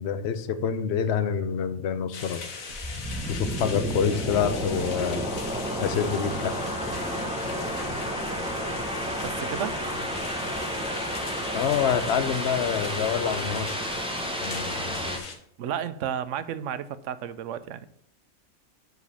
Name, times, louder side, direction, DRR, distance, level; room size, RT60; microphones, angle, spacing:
voice 1, 0.0-2.4 3.3-5.3 5.8-6.6 11.5-13.8 14.4-15.3, left 7 dB, 60° left, 11 dB, 0.9 m, -27 dB
sound 1, 2.1-15.4, left 4 dB, 85° left, 1.6 m, -39 dB
sound 2, 2.7-15.2, equal, 5° right, 0.7 m, -31 dB
voice 2, 9.2-9.8 15.6-17.9, right 9 dB, 70° right, 14 dB, 0.9 m, -32 dB
7.4 x 4.0 x 6.8 m, 0.67 s
omnidirectional pair, 1.4 m